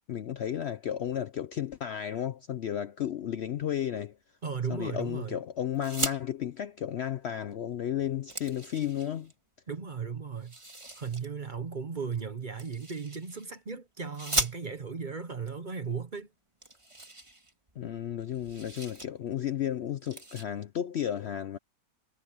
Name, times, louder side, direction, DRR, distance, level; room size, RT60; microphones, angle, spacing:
voice 1, 0.1-4.2 4.7-9.3 17.8-21.6, left 10 dB, 60° left, 0.7 m, -33 dB
voice 2, 4.4-5.4 9.7-10.6 11.0-16.3, right 5 dB, 35° right, 1.0 m, -36 dB
sound 1, 5.7-6.2 7.5-7.6 7.9-9.3 10.4-11.3 12.6-13.5 14.1-15.0 15.9-16.0 16.2-16.3 16.6-17.9 18.2-19.1 19.4-19.6 20.0-20.4, right 2 dB, 20° right, 2.0 m, -37 dB
omnidirectional pair, 1.6 m